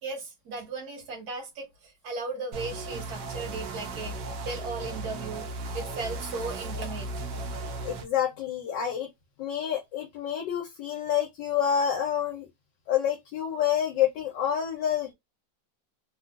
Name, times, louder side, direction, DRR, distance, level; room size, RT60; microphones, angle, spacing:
voice 1, 0.0-5.5 5.7-7.5, right 3 dB, 60° right, 1.5 m, -37 dB
sound 1, 2.5-8.0, right 2 dB, 75° right, 1.3 m, -36 dB
voice 2, 7.8-9.1 9.4-12.5 12.9-15.1, left 9 dB, 75° left, 1.3 m, -28 dB
3.4 x 2.4 x 2.3 m
omnidirectional pair, 2.0 m